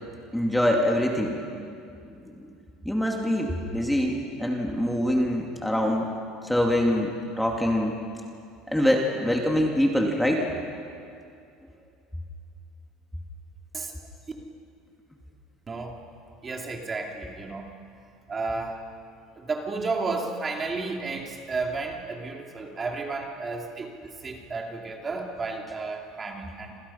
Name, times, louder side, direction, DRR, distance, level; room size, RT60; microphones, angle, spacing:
voice 1, 0.3-1.4 2.2-2.5 2.8-6.1 6.4-8.0 8.7-10.4, left 1 dB, 5° left, 0 dB, 2.4 m, -24 dB
voice 2, 16.4-17.7 18.3-18.8 19.4-26.8, right 3 dB, 20° right, 2 dB, 2.7 m, -32 dB
29.0 x 27.0 x 5.7 m, 2.4 s
cardioid pair, 145°, 0 cm